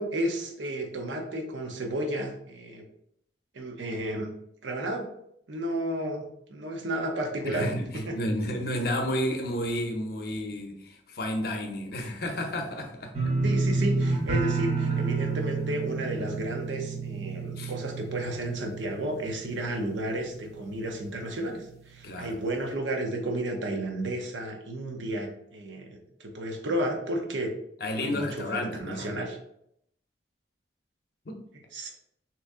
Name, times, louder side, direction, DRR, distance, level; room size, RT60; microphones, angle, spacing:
voice 1, 0.0-2.8 3.5-4.3 4.6-5.1 5.5-7.7 7.9-8.1 13.4-27.5 27.9-29.4 31.7-31.9, right 1 dB, 85° right, 3 dB, 0.7 m, -32 dB
voice 2, 7.4-13.1 17.6-17.7 22.0-22.3 27.8-29.1 31.3-31.4, equal, 55° left, 3 dB, 0.6 m, -31 dB
sound 1, 13.1-20.0 20.3-20.9 21.2-21.3, right 3 dB, 35° right, 0.7 m, -29 dB
2.9 x 2.6 x 3.6 m, 0.73 s
head